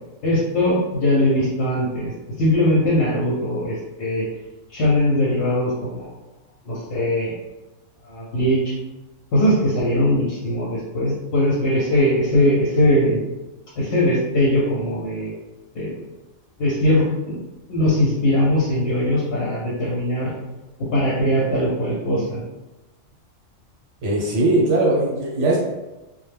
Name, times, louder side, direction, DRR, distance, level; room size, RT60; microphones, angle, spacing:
voice 1, 0.2-2.1 2.4-4.3 4.7-6.1 6.7-7.3 8.1-8.7 9.3-13.2 13.8-15.3 15.7-16.0 16.6-17.4 17.7-20.3 20.8-22.4, left 1 dB, 60° left, -6 dB, 0.7 m, -20 dB
voice 2, 24.0-25.6, right 2 dB, 70° right, -4 dB, 1.1 m, -19 dB
2.1 x 2.1 x 3.2 m, 1.0 s
omnidirectional pair, 1.3 m